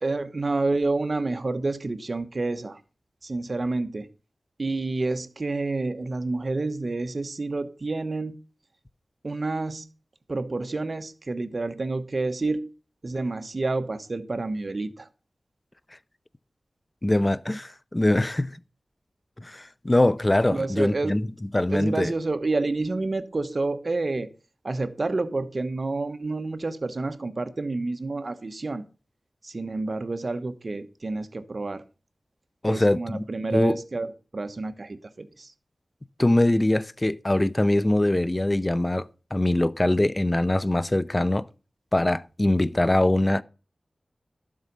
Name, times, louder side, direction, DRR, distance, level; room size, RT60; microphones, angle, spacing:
voice 1, 0.0-2.8 3.2-4.1 4.6-8.3 9.2-9.9 10.3-12.7 13.0-15.1 20.5-21.2 21.7-24.3 24.6-28.8 29.4-31.8 32.6-35.5, right 3 dB, 50° right, 1.2 m, -29 dB
voice 2, 17.0-18.5 19.4-21.2 21.5-22.1 32.6-33.2 33.5-33.8 36.2-41.5 41.9-43.4, left 1 dB, 25° left, 0.6 m, -22 dB
12.0 x 7.4 x 5.4 m
wide cardioid pair, 65°, 0 cm